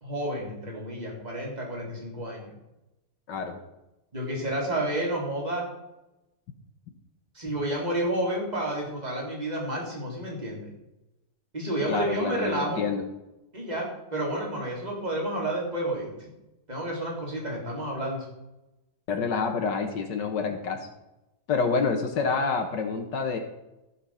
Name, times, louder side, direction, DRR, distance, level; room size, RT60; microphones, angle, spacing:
voice 1, 0.0-2.6 4.1-5.7 7.3-10.7 11.5-12.8 13.5-13.9 14.1-16.1 16.7-18.3, right 1 dB, 20° right, -2 dB, 3.6 m, -30 dB
voice 2, 3.3-3.6 11.9-13.1 19.1-20.9 21.5-23.4, left 5 dB, 75° left, 4 dB, 1.9 m, -27 dB
15.0 x 6.1 x 5.6 m, 0.95 s
omnidirectional pair, 1.9 m